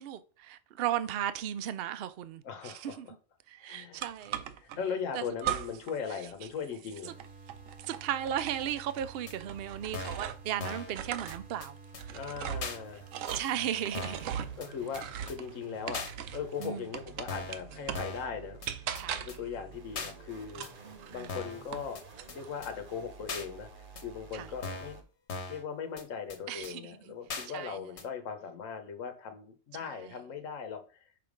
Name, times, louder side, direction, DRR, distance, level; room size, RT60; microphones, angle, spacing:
voice 1, 0.0-3.1 3.5-4.5 5.1-5.2 7.9-12.2 13.3-14.5 16.6-16.9 18.9-19.2 20.8-21.4 24.3-24.5 26.5-27.1 27.5-27.8 29.8-30.1, right 10 dB, 60° right, 0.7 m, -36 dB
voice 2, 2.4-3.0 3.6-4.1 4.6-7.1 12.1-13.1 14.6-18.6 19.2-20.6 21.1-22.0 22.3-25.0 25.5-31.0, left 6 dB, 80° left, 1.3 m, -39 dB
sound 1, 4.0-4.8 5.4-6.0 6.3-10.5 10.9-16.5 16.9-18.2 18.6-19.5 20.5-21.9 22.2-22.8, right 10 dB, 80° right, 1.0 m, -39 dB
sound 2, 7.0-25.0, right 5 dB, 45° right, 1.1 m, -51 dB
sound 3, 9.3-9.4 9.9-10.3 10.6-10.9 11.3-11.4 11.6-11.7 11.9-12.0 12.6-12.8 13.3-13.4 13.9-14.3 14.6-14.7 14.9-15.0 15.3-15.4 15.9-16.1 16.6-16.7 17.3-17.6 17.9-18.3 18.6-18.7 19.0-19.1 19.3-19.4 20.0-20.1 20.6-20.7 21.3-21.6 22.0-22.1 22.3-22.4 22.6-22.7 23.3-23.5 24.0-24.1 24.6-25.0 25.3-25.6 26.0-26.1 26.3-26.4 26.6-26.7 27.3-27.5 28.0-28.1, left 4 dB, 60° left, 1.3 m, -39 dB
5.8 x 3.4 x 5.1 m
omnidirectional pair, 1.3 m